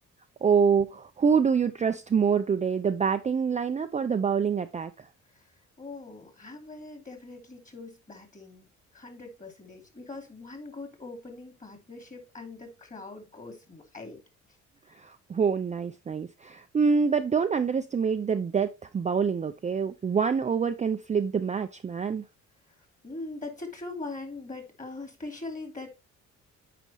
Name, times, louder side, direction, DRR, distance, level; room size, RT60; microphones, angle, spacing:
voice 1, 0.4-5.1 14.9-22.2, right 6 dB, 25° right, 0.4 m, -26 dB
voice 2, 5.8-14.2 23.0-25.9, left 3 dB, 25° left, 2.7 m, -42 dB
9.0 x 5.1 x 3.0 m
cardioid pair, 90°, 30 cm